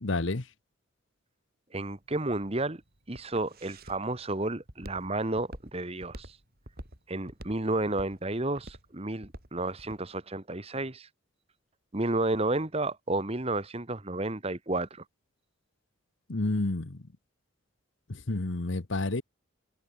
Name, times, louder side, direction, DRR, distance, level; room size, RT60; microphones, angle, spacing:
voice 1, 0.0-0.4 16.3-17.0 18.1-19.2, left 2 dB, 65° left, 1.1 m, -30 dB
voice 2, 1.7-2.8 3.1-6.4 7.1-11.1 11.9-15.0, right 2 dB, 30° right, 1.4 m, -31 dB
Walk footsteps, 1.9-10.1, right 1 dB, 45° right, 7.2 m, -47 dB
head